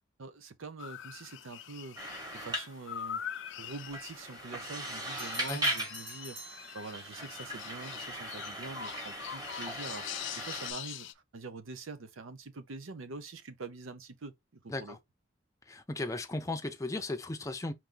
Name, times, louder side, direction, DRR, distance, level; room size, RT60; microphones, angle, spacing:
voice 1, 0.2-2.0 2.3-3.2 3.6-15.0, right 3 dB, 90° right, 0.7 m, -45 dB
sound 1, 0.8-11.1, left 10 dB, 65° left, 0.4 m, -44 dB
sound 2, 2.0-10.7, right 1 dB, 20° right, 1.2 m, -39 dB
Bell, 5.2-7.4, equal, 60° right, 3.2 m, -46 dB
voice 2, 15.7-17.7, left 2 dB, 15° left, 0.5 m, -36 dB
4.6 x 2.6 x 3.8 m
head